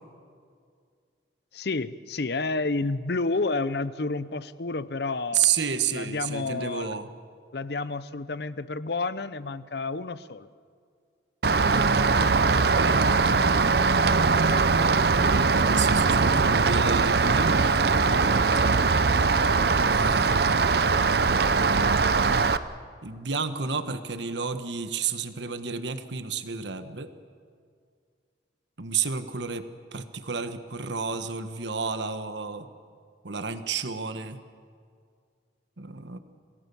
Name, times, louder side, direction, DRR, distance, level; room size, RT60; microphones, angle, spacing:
voice 1, 1.5-5.5 5.9-7.0 7.5-10.5 14.5-14.7, left 3 dB, 60° left, 16 dB, 0.7 m, -30 dB
voice 2, 5.3-7.1 11.7-13.7 14.8-18.7 19.7-20.6 23.0-27.1 28.8-32.7 33.2-34.4 35.8-36.2, right 6 dB, 70° right, 10 dB, 1.3 m, -31 dB
Rain, 11.4-22.6, right 4 dB, 55° right, 0.7 m, -21 dB
27.5 x 19.0 x 7.0 m, 2.2 s
head